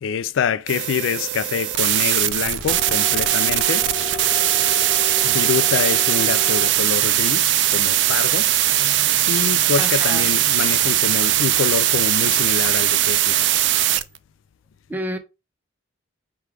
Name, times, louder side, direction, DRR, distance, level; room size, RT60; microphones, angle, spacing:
voice 1, 0.0-3.9 5.2-8.5 8.8-13.4, left 7 dB, 75° left, 0.3 m, -26 dB
sound 1, 0.7-14.2, right 13 dB, 65° right, 0.3 m, -20 dB
sound 2, 2.7-6.7, left 3 dB, 35° left, 1.1 m, -33 dB
voice 2, 9.8-10.3 14.9-15.2, equal, 10° right, 0.6 m, -29 dB
6.0 x 2.3 x 3.4 m
head